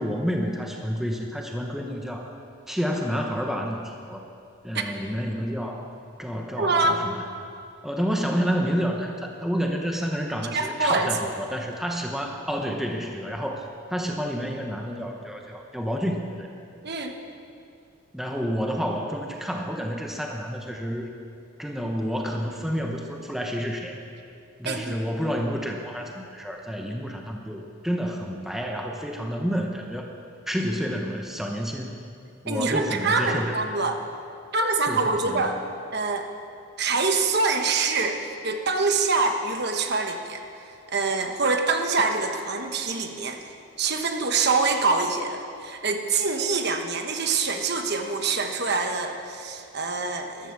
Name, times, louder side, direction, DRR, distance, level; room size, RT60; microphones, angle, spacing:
voice 1, 0.0-2.4 2.7-4.3 4.6-5.9 6.2-7.2 7.8-16.5 18.1-21.1 21.6-24.0 24.6-30.1 30.5-32.0 32.4-33.6 34.9-35.5, equal, ahead, 1 dB, 0.9 m, -29 dB
voice 2, 6.6-7.0 10.4-11.1 16.8-17.1 24.6-25.0 32.5-34.0 34.5-35.6 35.9-36.3 36.8-40.4 40.9-43.4 43.8-50.5, right 4 dB, 50° right, 5 dB, 1.2 m, -25 dB
14.0 x 13.0 x 6.9 m, 2.5 s
head